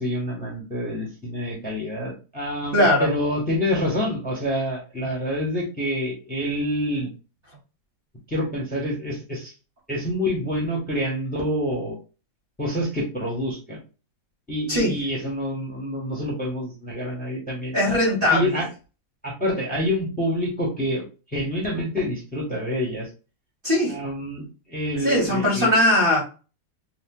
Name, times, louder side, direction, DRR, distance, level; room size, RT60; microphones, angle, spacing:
voice 1, 0.0-7.1 8.3-9.5 9.9-12.0 12.6-13.8 14.5-17.8 18.2-18.7 19.2-21.0 21.3-23.1 23.9-25.7, equal, 5° left, -2 dB, 1.1 m, -27 dB
voice 2, 2.7-3.1 14.7-15.0 17.7-18.6 23.6-24.0 25.0-26.2, left 1 dB, 35° right, -4 dB, 1.1 m, -20 dB
2.8 x 2.4 x 3.8 m, 0.32 s
omnidirectional pair, 2.0 m